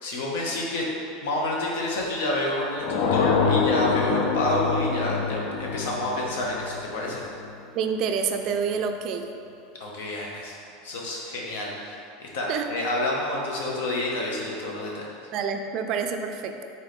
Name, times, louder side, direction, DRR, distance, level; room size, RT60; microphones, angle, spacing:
voice 1, 0.0-0.8 1.2-7.2 9.8-10.6 10.8-15.1, left 1 dB, 85° left, -3 dB, 0.9 m, -29 dB
sound 1, 2.8-7.5, left 5 dB, 60° left, 0.4 m, -26 dB
voice 2, 7.7-9.3 12.5-12.6 15.3-16.6, right 6 dB, 45° right, 5 dB, 0.3 m, -27 dB
3.9 x 3.1 x 4.1 m, 2.6 s
supercardioid pair, 140°, 0 cm